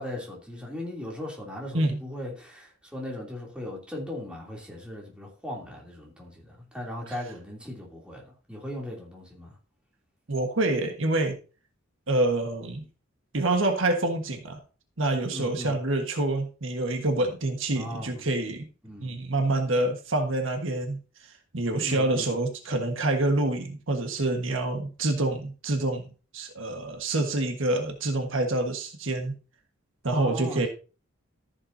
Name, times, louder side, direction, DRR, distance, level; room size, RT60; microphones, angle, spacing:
voice 1, 0.0-9.6 15.3-15.8 17.7-18.2 18.8-19.2 21.8-22.3 30.1-30.7, left 1 dB, 5° right, 3.0 m, -38 dB
voice 2, 10.3-11.4 12.1-12.9 13.3-14.6 15.0-18.7 19.0-26.0 26.3-29.3 30.0-30.7, right 2 dB, 75° right, 1.5 m, -27 dB
14.0 x 7.2 x 2.7 m
head